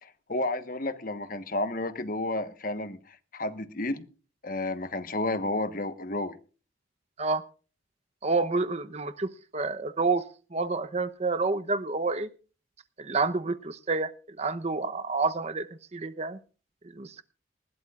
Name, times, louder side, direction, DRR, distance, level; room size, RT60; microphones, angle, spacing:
voice 1, 0.0-4.0 4.4-6.4, left 2 dB, 45° left, 1.2 m, -31 dB
voice 2, 8.2-10.2 10.5-12.3 13.0-16.4 16.9-17.2, right 3 dB, 35° right, 0.8 m, -29 dB
20.0 x 16.0 x 2.4 m
head